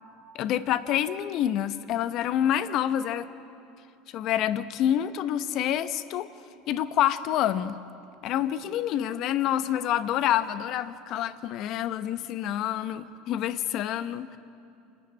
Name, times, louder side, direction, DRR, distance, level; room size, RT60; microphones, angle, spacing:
voice 1, 0.3-3.3 4.1-6.3 6.7-7.8 8.2-14.4, left 11 dB, 55° left, 12 dB, 0.9 m, -27 dB
27.5 x 10.0 x 9.5 m, 2.6 s
hypercardioid pair, 90°, 0 cm